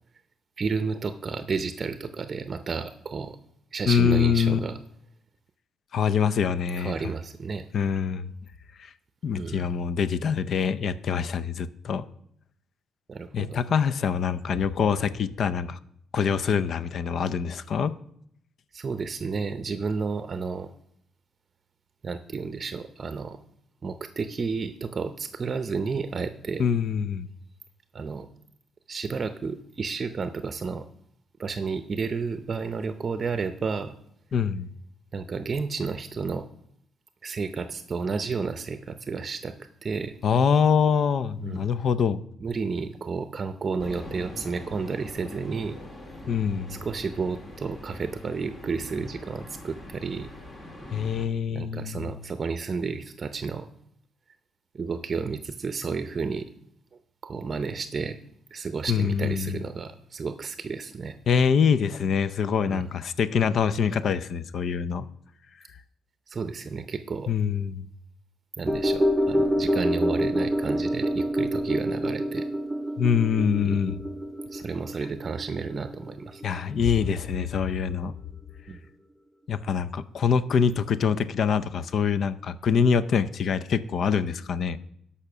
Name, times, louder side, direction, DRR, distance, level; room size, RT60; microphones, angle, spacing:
voice 1, 0.6-3.4 3.7-4.8 6.8-7.7 9.3-9.7 13.1-13.6 18.7-20.7 22.0-23.4 23.8-26.6 27.9-28.3 28.9-30.9 31.4-34.0 35.1-36.5 37.2-39.5 39.8-40.1 41.4-41.7 42.4-45.8 46.7-50.3 51.5-53.7 54.7-56.5 57.2-58.2 58.5-61.2 62.6-62.9 66.3-67.3 68.6-72.5 73.6-73.8 74.5-76.6 78.7-78.8, right 5 dB, 40° right, 10 dB, 0.7 m, -31 dB
voice 2, 3.9-4.6 5.9-6.9 7.7-8.3 8.8-8.9 9.2-12.0 13.3-15.8 16.1-17.9 26.6-27.3 34.3-34.7 40.2-42.2 46.3-46.8 50.9-52.2 58.9-59.6 61.3-65.1 67.3-67.9 73.0-74.0 76.4-78.1 79.5-84.8, left 7 dB, 60° left, 14 dB, 0.6 m, -24 dB
sound 1, 43.8-51.3, left 1 dB, 35° left, 2.3 m, -43 dB
sound 2, 68.7-77.1 77.4-77.5, equal, ahead, 0.7 m, -27 dB
13.0 x 5.7 x 6.1 m, 0.71 s
cardioid pair, 90°, 0 cm